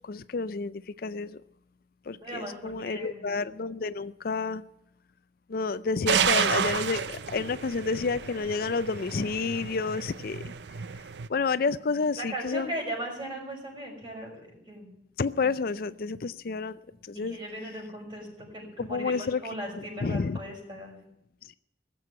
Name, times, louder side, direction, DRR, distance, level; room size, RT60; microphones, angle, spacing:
voice 1, 0.0-1.4 2.1-4.6 5.5-10.5 11.3-12.7 15.2-17.4 18.8-19.4 20.0-20.4 21.4-21.5, left 4 dB, 55° left, 15 dB, 0.5 m, -30 dB
voice 2, 2.2-3.3 12.2-14.9 17.1-21.0, right 1 dB, 30° right, -1 dB, 6.0 m, -38 dB
sound 1, 6.1-11.3, right 7 dB, 75° right, 0.6 m, -30 dB
18.5 x 7.7 x 9.5 m, 0.78 s
head